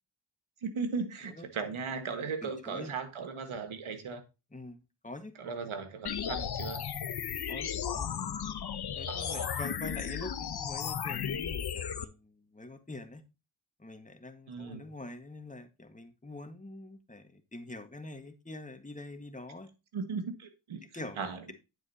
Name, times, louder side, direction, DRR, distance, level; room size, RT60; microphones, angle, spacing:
voice 1, 0.6-4.2 5.4-6.8 9.1-9.6 14.5-14.8 19.9-20.8 21.2-21.5, right 5 dB, 75° right, 1.7 m, -37 dB
voice 2, 2.4-2.9 4.5-5.3 5.6-5.7 7.5-13.2 13.8-19.7 20.9-21.5, left 2 dB, 15° left, 1.6 m, -45 dB
sound 1, 6.0-12.0, left 8 dB, 50° left, 0.9 m, -35 dB
9.1 x 7.6 x 2.8 m
cardioid pair, 55°, 49 cm